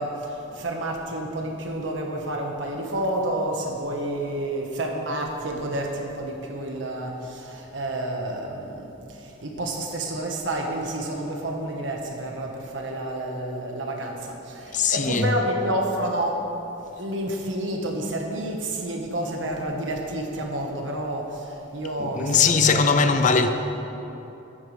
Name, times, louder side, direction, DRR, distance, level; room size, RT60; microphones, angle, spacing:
voice 1, 0.0-16.4 17.0-23.5, right 1 dB, 80° right, 1.4 m, -29 dB
voice 2, 14.7-15.3 22.0-23.5, left 5 dB, 40° left, 0.5 m, -20 dB
13.0 x 9.6 x 3.4 m
head